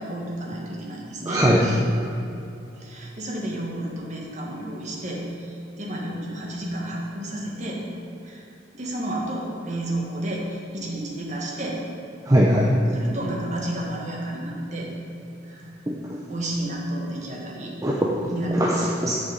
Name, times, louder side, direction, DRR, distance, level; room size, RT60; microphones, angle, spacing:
voice 1, 0.0-1.8 2.8-7.8 8.2-8.4 8.7-11.8 12.9-14.9 15.4-15.7 16.3-17.7 18.3-18.9, right 1 dB, 40° right, -2 dB, 1.7 m, -31 dB
voice 2, 1.3-1.6 12.3-12.7 15.9-16.2 17.8-18.1 18.6-19.1, equal, 15° right, -3 dB, 0.6 m, -20 dB
10.5 x 6.3 x 5.2 m, 2.8 s
head